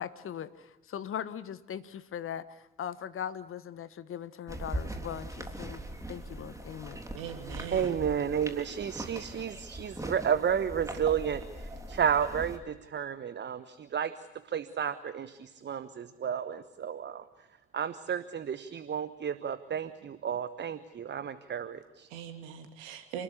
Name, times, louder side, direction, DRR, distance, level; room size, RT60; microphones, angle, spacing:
voice 1, 0.0-5.8 6.1-7.0, left 9 dB, 40° left, 13 dB, 1.4 m, -39 dB
sound 1, 4.5-12.6, right 1 dB, 10° right, 3.5 m, -41 dB
voice 2, 7.1-7.9 22.1-23.2, right 8 dB, 65° right, 6 dB, 2.8 m, -41 dB
voice 3, 7.7-14.1 14.4-17.2 17.7-22.1, right 8 dB, 35° right, 13 dB, 1.2 m, -32 dB
28.5 x 20.0 x 8.5 m, 0.97 s
figure-of-eight pair, 50°, 32 cm